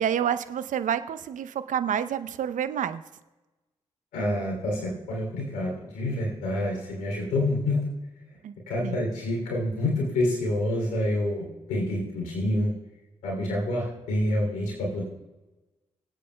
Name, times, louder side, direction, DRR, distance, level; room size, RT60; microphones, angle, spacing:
voice 1, 0.0-3.0 8.4-8.5 8.8-9.0, right 9 dB, 65° right, 12 dB, 0.6 m, -28 dB
voice 2, 4.1-7.8 8.7-12.7 13.2-15.0, left 1 dB, 80° left, -1 dB, 3.0 m, -27 dB
23.5 x 8.4 x 2.2 m, 1.1 s
hypercardioid pair, 40°, 14 cm